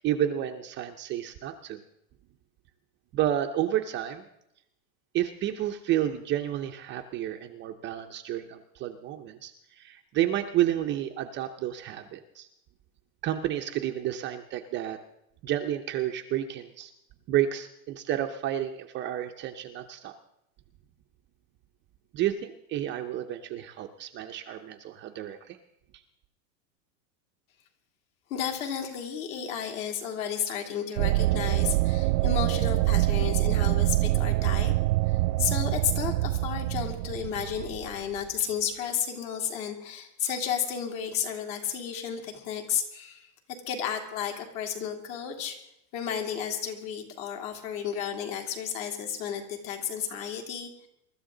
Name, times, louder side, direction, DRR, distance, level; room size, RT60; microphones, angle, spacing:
voice 1, 0.0-1.8 3.1-4.2 5.1-12.5 13.2-15.0 15.4-16.9 17.3-20.1 22.1-25.6, right 12 dB, 25° right, 5 dB, 0.6 m, -30 dB
voice 2, 28.3-34.7 35.1-43.3 43.7-45.6 45.9-50.9, left 8 dB, 55° left, 3 dB, 3.3 m, -32 dB
sound 1, 31.0-38.2, right 18 dB, 70° right, 0.5 m, -25 dB
23.5 x 13.0 x 3.8 m, 0.79 s
supercardioid pair, 150°, 48 cm